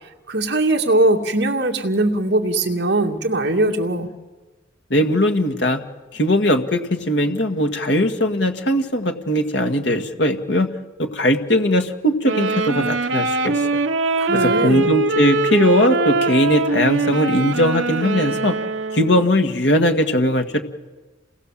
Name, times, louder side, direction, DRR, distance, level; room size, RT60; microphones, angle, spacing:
voice 1, 0.3-4.1 14.2-14.9, right 2 dB, 65° right, 2 dB, 2.4 m, -20 dB
voice 2, 4.9-5.8 6.1-10.7 11.0-13.8 14.3-18.6 18.9-20.6, equal, 65° left, 5 dB, 1.8 m, -19 dB
sound 1, 12.2-19.3, right 3 dB, 80° right, 1.0 m, -22 dB
28.5 x 20.0 x 7.6 m, 1.2 s
head